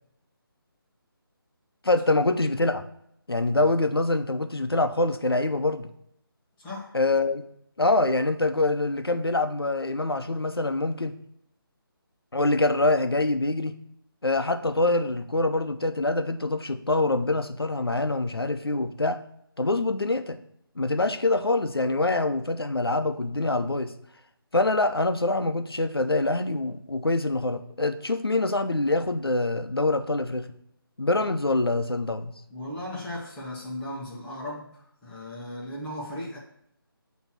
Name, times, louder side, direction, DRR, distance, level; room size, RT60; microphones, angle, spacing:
voice 1, 1.8-2.8 3.3-5.9 6.9-7.4 7.8-11.2 12.3-13.8 14.2-19.2 19.6-20.4 20.8-23.9 24.5-30.5 31.0-32.3, left 2 dB, 80° left, 8 dB, 0.7 m, -25 dB
voice 2, 6.6-7.0 32.5-36.4, left 1 dB, 10° left, -6 dB, 1.1 m, -36 dB
6.9 x 3.1 x 5.7 m, 0.73 s
figure-of-eight pair, 155°, 12 cm